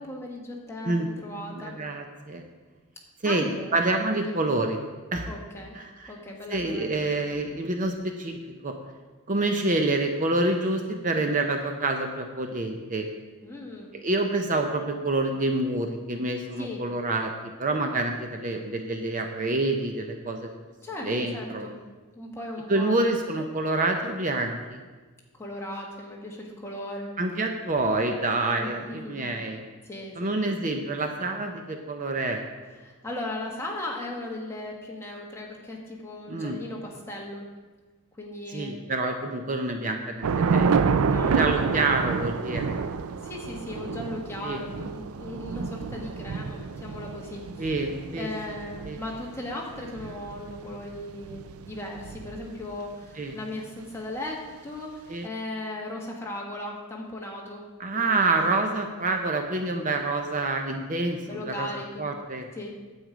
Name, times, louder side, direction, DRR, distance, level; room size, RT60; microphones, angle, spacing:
voice 1, 0.0-1.7 3.2-3.8 4.2-4.4 5.3-5.8 6.1-7.0 13.4-13.9 16.6-16.8 20.8-21.8 22.1-23.0 25.4-27.1 28.6-29.3 29.8-30.4 32.8-37.4 38.2-38.8 41.0-41.7 43.2-47.7 48.2-57.6 57.9-58.4 61.3-62.1 62.5-62.7, left 1 dB, 10° left, -2 dB, 1.4 m, -37 dB
voice 2, 1.5-2.4 3.2-4.8 5.1-5.3 5.7-6.1 6.5-8.4 8.6-8.7 9.3-13.1 14.0-20.6 21.0-21.7 22.7-24.8 27.2-29.6 30.2-32.4 36.3-36.6 38.5-40.7 41.3-42.8 44.4-44.6 47.6-48.6 48.8-49.0 53.2-53.3 55.1-55.3 57.8-61.7 62.0-62.5, right 2 dB, 35° right, 4 dB, 0.6 m, -27 dB
Thunder / Rain, 40.2-52.7, right 5 dB, 70° right, 0.4 m, -29 dB
9.1 x 8.1 x 5.0 m, 1.3 s
head